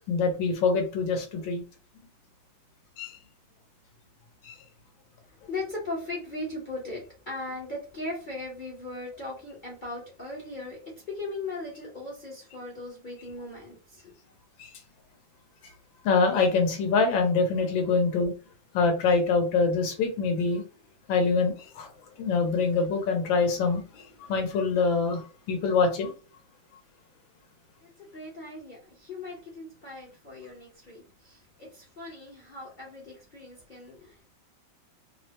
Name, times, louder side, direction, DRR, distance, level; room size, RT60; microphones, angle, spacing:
voice 1, 0.1-1.6 3.0-3.2 4.4-4.6 14.6-14.8 16.0-18.3 18.7-20.6 21.1-21.9 22.2-26.1, left 4 dB, 85° left, 3 dB, 1.5 m, -25 dB
voice 2, 5.3-14.1 27.8-34.2, left 2 dB, 50° left, -3 dB, 0.5 m, -38 dB
3.4 x 2.1 x 2.8 m, 0.36 s
omnidirectional pair, 2.1 m